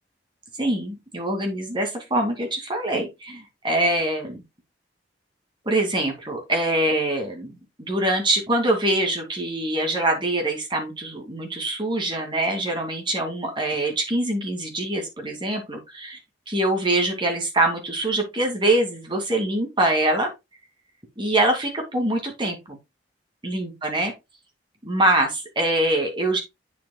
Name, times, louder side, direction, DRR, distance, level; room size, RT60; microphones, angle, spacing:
voice 1, 0.6-4.4 5.6-16.2 16.5-20.3 21.2-22.8 23.4-24.1 24.8-26.4, right 1 dB, 25° right, 2.4 m, -24 dB
8.4 x 7.2 x 2.3 m
head